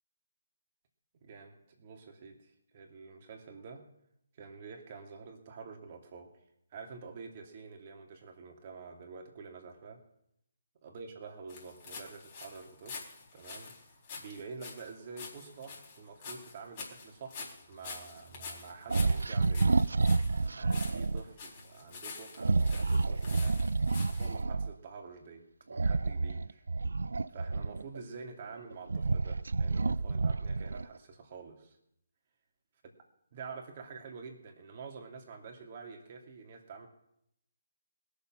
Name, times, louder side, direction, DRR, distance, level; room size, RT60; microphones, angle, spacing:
voice 1, 1.2-3.8 4.3-6.3 6.7-10.0 10.8-13.7 14.2-19.9 20.5-23.6 24.0-26.6 27.3-31.8 33.3-36.9, right 5 dB, 40° right, 3 dB, 2.6 m, -48 dB
sound 1, 11.5-24.4, left 4 dB, 35° left, 4.2 m, -47 dB
sound 2, 17.6-21.0, right 6 dB, 5° left, 2.2 m, -60 dB
sound 3, 18.9-21.2 22.4-24.7 25.7-28.0 28.6-31.0, right 3 dB, 75° right, 0.4 m, -29 dB
20.0 x 7.0 x 6.1 m, 0.76 s
figure-of-eight pair, 145°, 0 cm